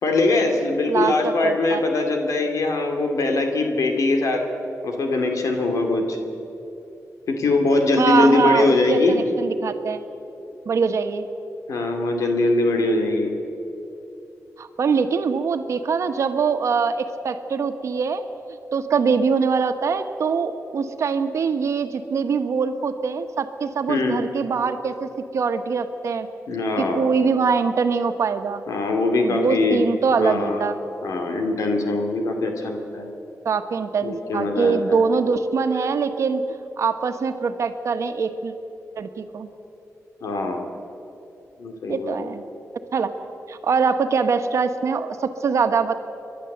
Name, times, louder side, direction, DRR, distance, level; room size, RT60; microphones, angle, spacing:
voice 1, 0.0-4.4 4.8-6.2 7.3-9.2 11.7-13.3 23.9-24.2 26.5-27.1 28.7-29.8 30.2-30.7 31.0-33.1 34.0-35.0 40.2-40.6 41.6-42.3, left 2 dB, 85° left, 3 dB, 2.5 m, -22 dB
voice 2, 1.4-1.8 8.0-10.0 10.6-11.3 14.6-18.2 18.7-26.3 26.8-28.6 29.2-30.8 33.4-36.4 36.8-38.5 38.9-39.5 41.9-42.4 42.9-43.1 43.5-45.9, right 5 dB, 65° right, 8 dB, 1.3 m, -23 dB
29.5 x 11.5 x 8.0 m, 3.0 s
wide cardioid pair, 145°, 5 cm